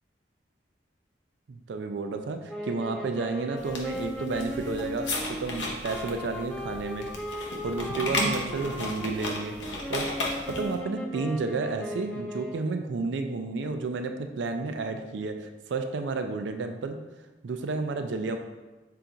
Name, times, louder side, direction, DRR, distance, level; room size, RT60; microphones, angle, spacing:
voice 1, 1.5-7.1 7.6-9.6 9.9-10.1 10.5-17.0 17.4-18.4, right 3 dB, 75° right, 6 dB, 0.4 m, -31 dB
sound 1, 2.5-12.8, equal, 5° left, 0.4 m, -37 dB
sound 2, 3.6-10.8, left 1 dB, 85° left, 0.8 m, -34 dB
5.7 x 2.4 x 3.9 m, 1.2 s
head